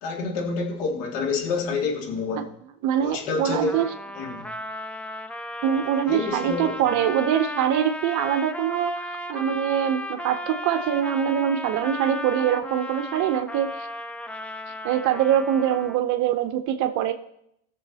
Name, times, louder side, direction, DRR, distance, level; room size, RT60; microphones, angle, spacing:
voice 1, 0.0-2.5 3.0-3.8 4.1-4.5 6.1-6.7, left 4 dB, 80° left, 0 dB, 2.4 m, -28 dB
voice 2, 2.8-3.9 5.6-13.9 14.8-17.1, right 9 dB, 55° right, 8 dB, 0.7 m, -24 dB
Trumpet, 3.7-16.1, left 1 dB, 5° left, 0.6 m, -35 dB
17.0 x 6.9 x 2.8 m, 0.75 s
supercardioid pair, 105°, 36 cm